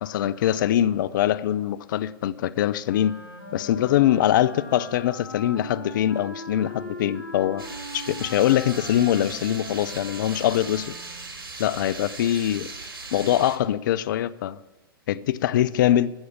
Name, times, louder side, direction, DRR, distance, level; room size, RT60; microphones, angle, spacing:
voice 1, 0.0-3.1 3.5-7.6 7.9-10.9 11.6-12.7 13.1-14.6 15.1-16.1, left 12 dB, 55° left, 0.6 m, -23 dB
Wind instrument woodwind instrument, 2.8-11.4, left 1 dB, 85° left, 2.9 m, -40 dB
sound 1, 7.6-13.6, right 3 dB, 80° right, 2.9 m, -38 dB
15.5 x 6.4 x 8.7 m
hypercardioid pair, 120°, 12 cm